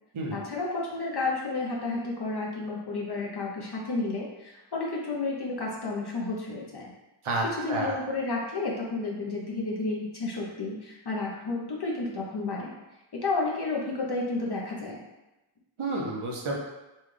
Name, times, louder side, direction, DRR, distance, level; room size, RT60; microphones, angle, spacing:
voice 1, 0.3-6.9 7.5-12.7 13.2-15.0, left 3 dB, 55° left, -3 dB, 0.7 m, -31 dB
voice 2, 7.2-7.9 15.8-16.5, right 2 dB, 75° right, -2 dB, 0.8 m, -30 dB
4.2 x 2.3 x 3.1 m, 1.0 s
wide cardioid pair, 70°, 50 cm